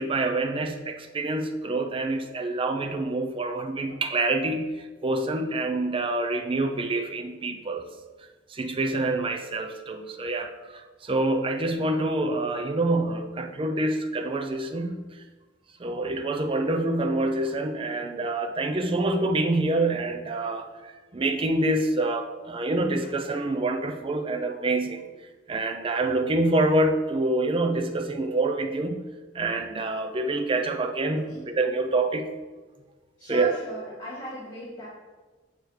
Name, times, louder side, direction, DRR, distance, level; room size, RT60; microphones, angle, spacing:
voice 1, 0.0-7.9 8.5-15.0 15.8-25.0 25.5-29.0 29.3-32.3 33.3-33.5, right 2 dB, 30° right, 5 dB, 0.4 m, -26 dB
voice 2, 31.1-31.5 33.2-34.9, equal, 25° left, -9 dB, 1.9 m, -37 dB
8.2 x 6.3 x 3.2 m, 1.3 s
head